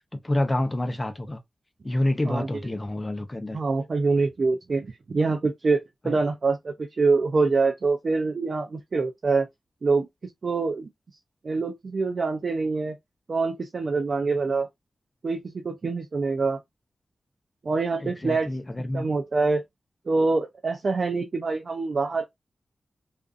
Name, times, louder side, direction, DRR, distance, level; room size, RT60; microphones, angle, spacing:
voice 1, 0.1-1.4 1.8-3.6 6.0-6.1 18.0-19.1, left 1 dB, 25° left, 0.6 m, -28 dB
voice 2, 3.5-9.5 9.8-10.1 10.4-10.9 11.4-13.0 13.3-14.7 15.2-16.6 17.6-18.6 18.9-19.6 20.1-22.2, right 4 dB, 60° right, 0.4 m, -25 dB
2.5 x 2.4 x 2.4 m
cardioid pair, 60°, 0 cm